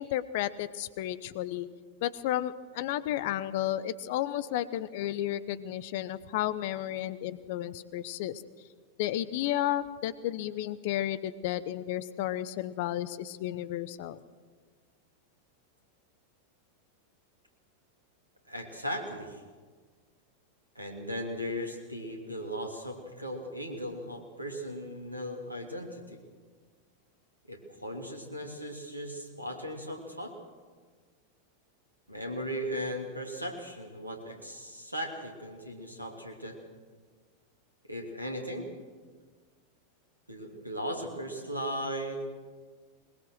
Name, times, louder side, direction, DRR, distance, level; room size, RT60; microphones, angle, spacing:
voice 1, 0.0-1.7 2.0-8.4 9.0-14.2, left 13 dB, 50° left, 16 dB, 0.9 m, -32 dB
voice 2, 18.5-19.4 20.7-26.2 27.5-30.3 32.1-36.6 37.9-38.7 40.3-42.4, equal, 85° right, 3 dB, 2.9 m, -37 dB
21.5 x 21.0 x 6.3 m, 1.5 s
figure-of-eight pair, 90°, 0 cm